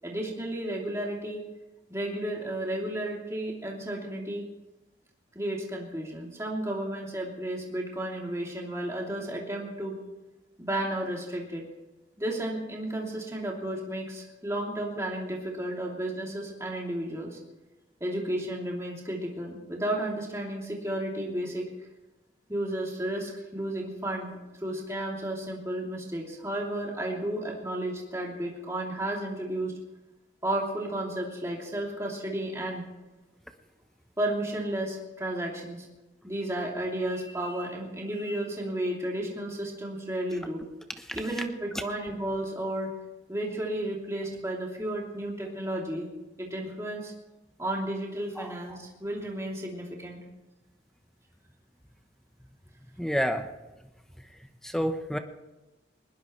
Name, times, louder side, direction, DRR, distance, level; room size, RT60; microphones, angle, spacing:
voice 1, 0.0-1.4 1.9-4.4 5.3-10.0 10.6-11.6 12.2-17.4 18.0-21.6 22.5-29.7 30.4-32.8 34.2-35.9 36.2-40.6 41.1-42.9 43.3-46.1 46.4-47.1 47.6-50.2, right 1 dB, 15° right, -2 dB, 3.1 m, -33 dB
voice 2, 53.0-53.5 54.2-55.2, equal, ahead, 6 dB, 1.0 m, -30 dB
21.5 x 19.5 x 3.3 m, 1.1 s
head